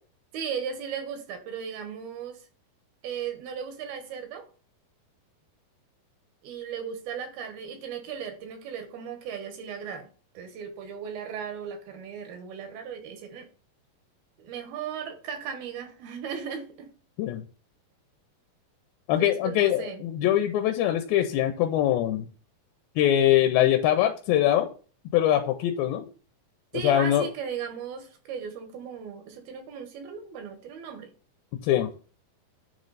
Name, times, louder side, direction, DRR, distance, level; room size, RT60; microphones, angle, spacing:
voice 1, 0.3-2.5 3.0-4.4 6.4-10.1 10.3-13.5 14.4-16.9 19.2-20.0 26.7-31.1, right 7 dB, 90° right, 6 dB, 3.0 m, -36 dB
voice 2, 19.1-22.3 23.0-24.7 25.1-26.1 26.8-27.3 31.6-31.9, left 12 dB, 85° left, 5 dB, 2.4 m, -23 dB
9.3 x 3.2 x 3.9 m, 0.38 s
omnidirectional pair, 4.2 m